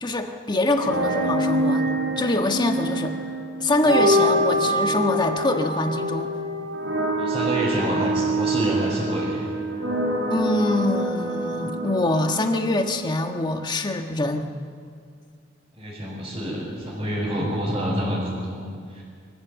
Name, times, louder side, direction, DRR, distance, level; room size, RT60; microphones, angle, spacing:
voice 1, 0.0-3.1 3.6-6.3 10.3-14.5, left 2 dB, 25° left, 4 dB, 1.4 m, -24 dB
sound 1, 0.7-13.7, right 1 dB, 85° right, 5.2 m, -25 dB
voice 2, 7.2-9.5 15.8-19.0, equal, 25° right, -9 dB, 5.6 m, -27 dB
25.0 x 15.0 x 8.0 m, 2.1 s
head